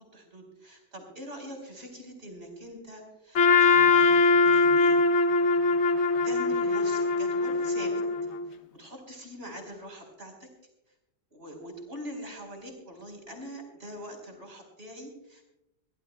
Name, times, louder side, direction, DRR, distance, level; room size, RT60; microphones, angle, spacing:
voice 1, 0.1-5.0 6.2-8.0 8.5-10.5 11.3-15.4, equal, 35° right, 2 dB, 4.8 m, -43 dB
Trumpet, 3.3-8.4, left 3 dB, 50° left, 1.0 m, -22 dB
24.0 x 17.5 x 2.3 m, 0.88 s
omnidirectional pair, 1.8 m